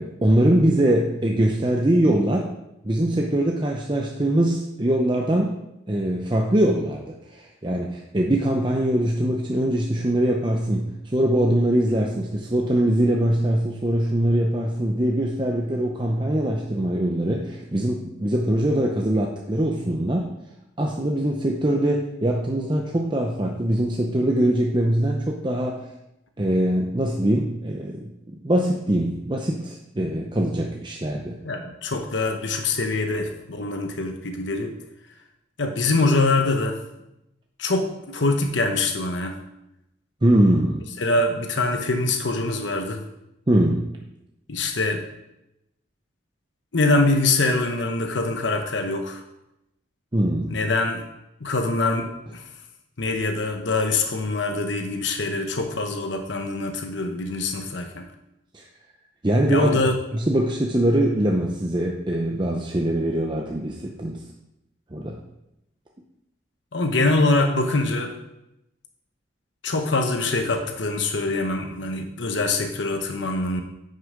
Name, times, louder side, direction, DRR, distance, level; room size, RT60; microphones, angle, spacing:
voice 1, 0.0-2.5 2.8-5.5 5.9-20.3 20.8-25.9 26.4-31.4 40.2-40.9 43.5-43.9 50.1-50.5 58.5-58.6 59.2-59.8 60.1-64.2 64.9-65.2, right 1 dB, 25° right, 0 dB, 0.7 m, -22 dB
voice 2, 31.4-34.8 35.6-36.8 37.6-39.4 41.0-43.0 44.5-45.1 46.7-49.2 50.5-51.0 51.4-52.5 53.0-58.1 59.5-60.0 66.7-68.2 69.6-73.6, left 2 dB, 75° left, 5 dB, 1.0 m, -24 dB
9.6 x 6.6 x 5.0 m, 0.89 s
head